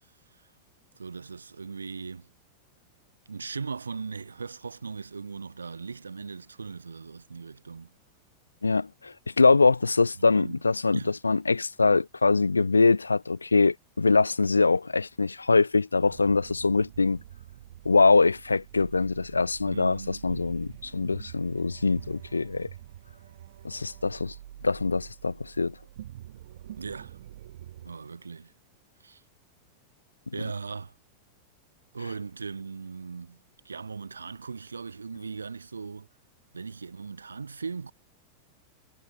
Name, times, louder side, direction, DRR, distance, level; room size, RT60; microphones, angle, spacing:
voice 1, 0.9-2.3 3.3-7.9 10.2-10.6 10.9-11.1 19.7-20.3 26.8-27.2 27.8-28.5 29.0-29.2 30.3-30.9 31.9-33.4 33.6-36.1 36.5-37.9, right 5 dB, 75° right, 2.4 m, -38 dB
voice 2, 8.6-17.2 17.9-22.7 23.6-24.3 24.6-25.7, left 3 dB, 80° left, 0.3 m, -23 dB
sound 1, 16.0-27.9, right 12 dB, 60° right, 2.1 m, -46 dB
figure-of-eight pair, 90°, 0 cm